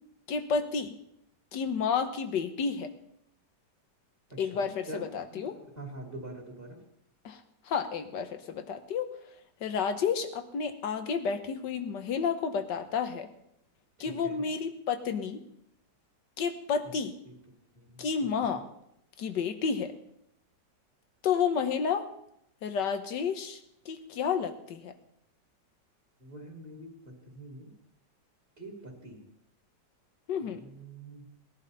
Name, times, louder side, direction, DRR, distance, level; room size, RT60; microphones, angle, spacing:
voice 1, 0.3-1.0 1.5-2.9 4.4-5.6 7.2-9.1 9.6-13.3 14.0-15.4 16.4-17.2 18.0-18.7 19.2-19.9 21.2-22.1 22.6-23.6 23.8-24.9 30.3-30.6, left 6 dB, 75° left, 8 dB, 1.8 m, -31 dB
voice 2, 4.3-6.8 14.0-14.4 17.2-17.3 17.7-18.6 26.2-26.9 27.3-27.7 28.6-29.2 30.4-31.3, right 2 dB, 30° right, -1 dB, 2.9 m, -45 dB
19.5 x 11.0 x 4.1 m, 0.77 s
omnidirectional pair, 1.9 m